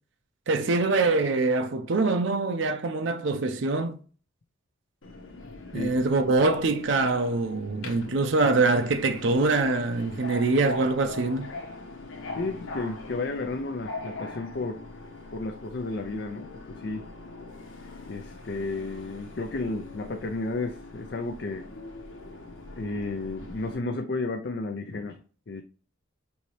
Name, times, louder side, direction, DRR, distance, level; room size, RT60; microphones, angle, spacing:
voice 1, 0.5-4.0 5.7-11.5, right 3 dB, 65° right, 0.5 m, -24 dB
Subway metro underground, 5.0-23.8, left 2 dB, 75° left, 0.9 m, -42 dB
voice 2, 12.3-14.8 15.3-17.1 18.1-21.7 22.8-25.2 25.5-25.6, left 3 dB, 55° left, 0.5 m, -32 dB
5.4 x 2.8 x 3.1 m
head